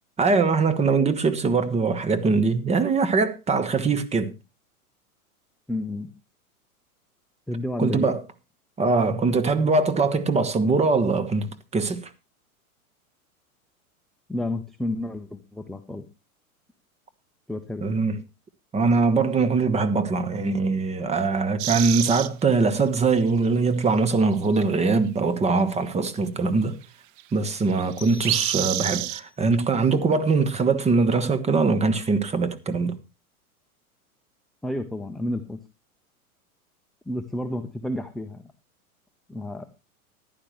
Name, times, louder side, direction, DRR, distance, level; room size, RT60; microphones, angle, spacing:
voice 1, 0.2-4.3 7.8-8.2 8.8-12.1 17.8-18.2 18.7-26.8 27.3-33.0, right 4 dB, 15° right, 1.3 m, -22 dB
voice 2, 5.7-6.1 7.5-8.1 14.3-16.0 17.5-17.9 34.6-35.6 37.1-38.5 39.3-39.7, left 1 dB, ahead, 0.8 m, -31 dB
sound 1, 21.6-22.3 23.5-23.6 24.0-24.1 24.5-24.6 27.2-27.3 27.5-29.2, right 17 dB, 35° right, 0.6 m, -28 dB
sound 2, 28.0-29.5, left 3 dB, 25° left, 2.1 m, -45 dB
14.5 x 11.0 x 3.1 m
hypercardioid pair, 105°, 44 cm